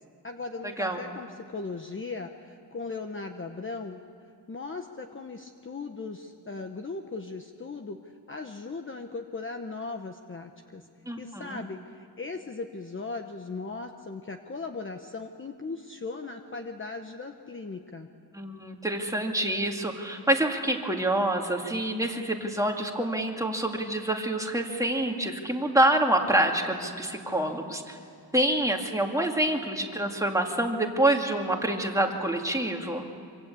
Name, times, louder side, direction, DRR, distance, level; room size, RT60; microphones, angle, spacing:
voice 1, 0.2-4.1 4.5-8.0 8.3-10.8 11.2-18.1, left 3 dB, 30° left, 5 dB, 1.1 m, -38 dB
voice 2, 11.1-11.6 18.3-28.0 28.3-33.1, right 1 dB, 5° right, 1 dB, 2.4 m, -27 dB
25.5 x 25.5 x 8.5 m, 2.3 s
wide cardioid pair, 150°, 44 cm